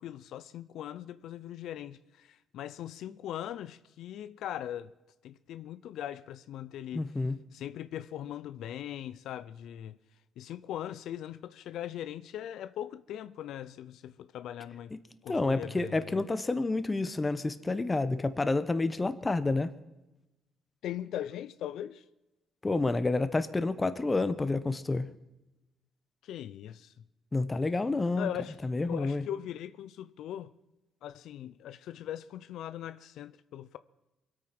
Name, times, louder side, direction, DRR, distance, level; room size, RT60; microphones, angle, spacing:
voice 1, 0.0-4.9 5.2-7.1 7.5-10.0 10.4-14.9 15.2-16.2 20.8-22.0 26.2-27.0 28.2-28.6 28.8-30.5 31.0-33.8, left 11 dB, 80° left, 0.5 m, -40 dB
voice 2, 6.9-7.4 15.3-19.7 22.6-25.1 27.3-28.3 28.6-29.2, left 3 dB, 20° left, 1.1 m, -29 dB
24.0 x 8.8 x 6.0 m
cardioid pair, 90°, 0 cm